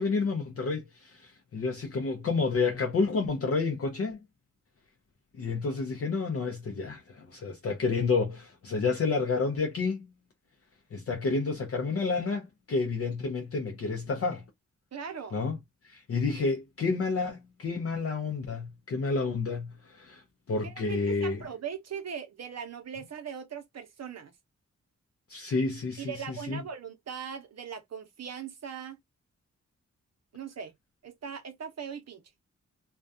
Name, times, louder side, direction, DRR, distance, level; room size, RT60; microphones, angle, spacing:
voice 1, 0.0-4.2 5.3-10.1 10.9-14.4 15.3-15.6 15.8-21.4 25.3-26.6, left 4 dB, 50° left, 0.5 m, -30 dB
voice 2, 14.9-15.4 20.6-24.3 26.0-29.0 30.3-30.7 31.0-32.2, right 7 dB, 60° right, 0.6 m, -40 dB
2.3 x 2.2 x 2.5 m
wide cardioid pair, 110°, 30 cm